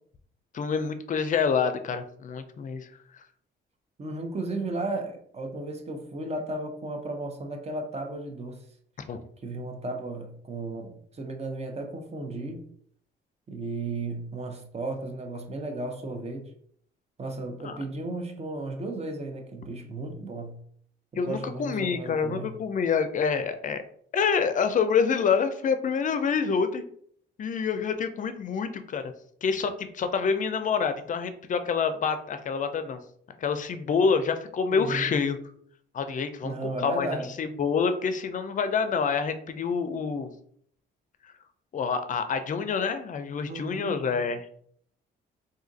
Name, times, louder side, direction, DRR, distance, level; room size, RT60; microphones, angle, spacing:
voice 1, 0.5-2.9 9.1-9.2 17.6-17.8 21.2-23.8 24.1-26.8 27.4-29.1 29.4-33.0 33.4-35.4 35.9-40.3 41.7-44.5, left 6 dB, 40° left, 9 dB, 0.5 m, -27 dB
voice 2, 4.0-8.6 9.4-12.6 13.5-16.5 17.2-20.6 21.1-22.5 34.7-35.1 36.4-37.3 43.5-44.0, right 2 dB, 30° right, 4 dB, 0.7 m, -34 dB
2.7 x 2.4 x 3.9 m, 0.63 s
cardioid pair, 90°, 20 cm